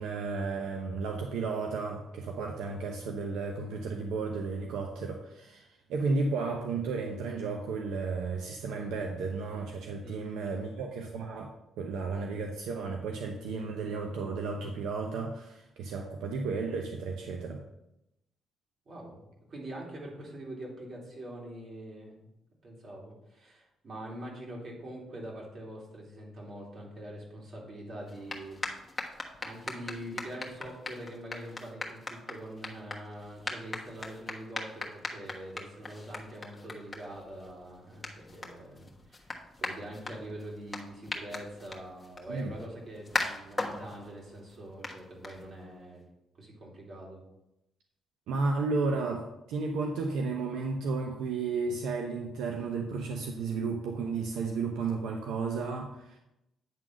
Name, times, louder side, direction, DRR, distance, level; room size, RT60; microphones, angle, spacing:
voice 1, 0.0-17.6 42.3-42.5 48.3-56.2, right 4 dB, 85° right, 2 dB, 0.8 m, -33 dB
voice 2, 18.8-22.3 22.6-28.8 29.4-46.0 46.3-47.2, right 1 dB, 50° right, -3 dB, 3.3 m, -44 dB
sound 1, 28.0-45.8, left 3 dB, 20° left, 1.3 m, -40 dB
9.3 x 3.9 x 6.2 m, 0.87 s
cardioid pair, 90°, 0 cm